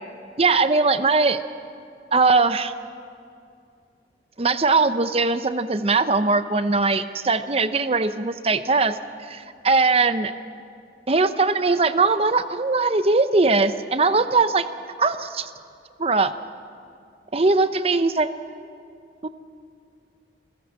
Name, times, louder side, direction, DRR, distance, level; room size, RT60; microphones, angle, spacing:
voice 1, 0.4-1.4 2.1-2.7 4.4-9.0 9.3-10.3 11.1-14.7 15.0-15.5 16.0-16.3 17.3-18.3 19.2-19.3, right 3 dB, 35° right, 12 dB, 0.7 m, -20 dB
28.0 x 15.5 x 7.6 m, 2.5 s
head